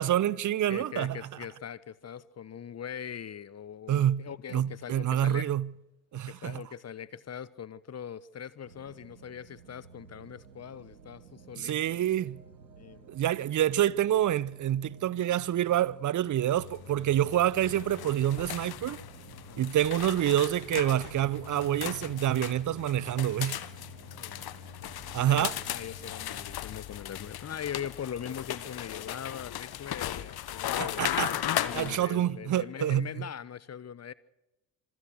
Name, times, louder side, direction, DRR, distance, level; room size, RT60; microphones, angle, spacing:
voice 1, 0.0-1.2 3.9-4.3 4.5-5.7 6.1-6.6 11.6-12.4 13.1-19.0 19.6-23.6 25.1-25.6 30.8-31.3 31.7-33.1, right 12 dB, 40° right, 0.8 m, -27 dB
voice 2, 0.7-5.5 6.3-12.1 12.8-13.2 19.5-19.7 24.1-24.5 25.2-31.1 31.6-34.1, left 8 dB, 30° left, 1.1 m, -41 dB
sound 1, 8.6-26.6, right 5 dB, 90° right, 1.4 m, -53 dB
sound 2, 16.6-32.0, left 12 dB, 50° left, 1.3 m, -37 dB
26.5 x 17.0 x 6.4 m
figure-of-eight pair, 40°, 49 cm